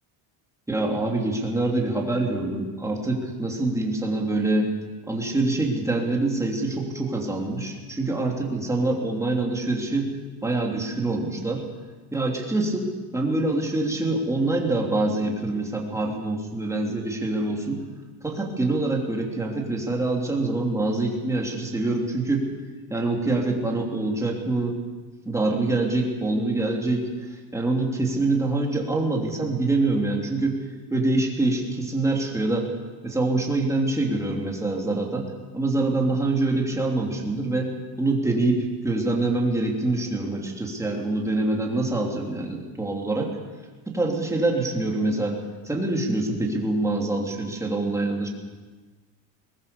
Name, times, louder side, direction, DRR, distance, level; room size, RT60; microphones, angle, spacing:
voice 1, 0.7-4.7 5.1-10.1 10.4-11.7 12.1-17.8 18.2-22.5 22.9-24.8 25.2-27.1 27.5-30.6 30.9-32.7 33.0-37.7 38.0-43.3 43.9-45.4 45.6-48.3, right 2 dB, 5° right, -1 dB, 3.2 m, -25 dB
22.0 x 19.0 x 6.9 m, 1.4 s
cardioid pair, 155°, 41 cm